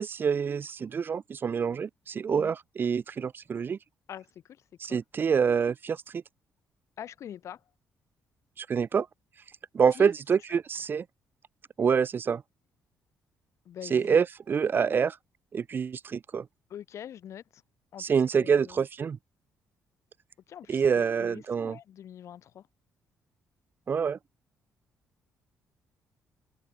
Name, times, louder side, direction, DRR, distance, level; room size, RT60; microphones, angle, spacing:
voice 1, 0.0-3.8 4.8-6.2 8.6-9.1 9.7-11.0 11.8-12.4 13.8-15.2 15.5-16.5 18.0-19.2 20.7-21.8 23.9-24.2, right 6 dB, 40° right, 0.8 m, -26 dB
voice 2, 7.0-7.6 9.9-10.1 13.7-14.2 14.7-14.9 16.7-17.4 17.9-18.8 20.5-22.6, left 10 dB, 65° left, 5.3 m, -44 dB
cardioid pair, 110°, 5 cm